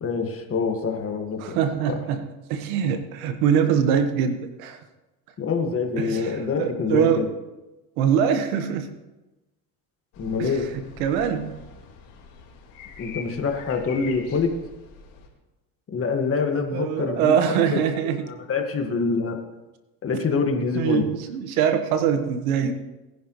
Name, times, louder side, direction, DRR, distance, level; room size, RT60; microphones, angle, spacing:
voice 1, 0.0-1.6 1.9-2.0 5.4-7.3 10.2-10.7 13.0-14.6 15.9-17.4 17.7-17.8 18.3-19.4 20.0-21.1 22.6-22.7, left 5 dB, 35° left, 4 dB, 1.8 m, -25 dB
voice 2, 1.4-4.8 6.0-7.2 8.0-8.9 10.4-10.5 11.0-11.6 16.7-18.3 20.7-22.7, right 8 dB, 90° right, 8 dB, 1.4 m, -23 dB
sound 1, 10.1-15.3, left 5 dB, 70° left, 4.2 m, -44 dB
21.5 x 10.0 x 3.2 m, 1.1 s
supercardioid pair, 110°, 41 cm